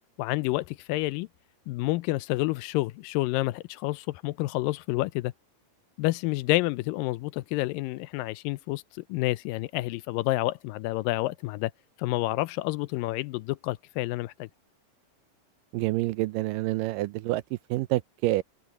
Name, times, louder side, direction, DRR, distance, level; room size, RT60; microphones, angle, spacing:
voice 1, 0.2-1.3 1.7-5.3 6.0-11.7 12.0-14.5, left 19 dB, 85° left, 2.3 m, -29 dB
voice 2, 15.7-17.4 17.7-18.4, right 17 dB, 80° right, 2.2 m, -27 dB
omnidirectional pair, 3.9 m